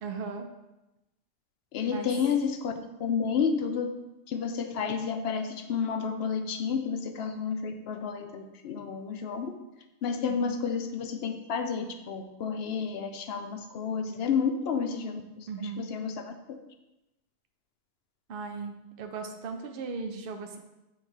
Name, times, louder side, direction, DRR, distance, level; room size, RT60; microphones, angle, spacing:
voice 1, 0.0-0.5 1.8-2.1 10.4-10.6 15.5-15.9 18.3-20.6, right 4 dB, 60° right, 5 dB, 0.8 m, -37 dB
voice 2, 1.7-2.7 3.0-3.9 4.3-9.5 10.0-15.5 15.8-16.6, left 6 dB, 70° left, 7 dB, 0.8 m, -31 dB
6.5 x 3.2 x 4.5 m, 0.97 s
omnidirectional pair, 1.1 m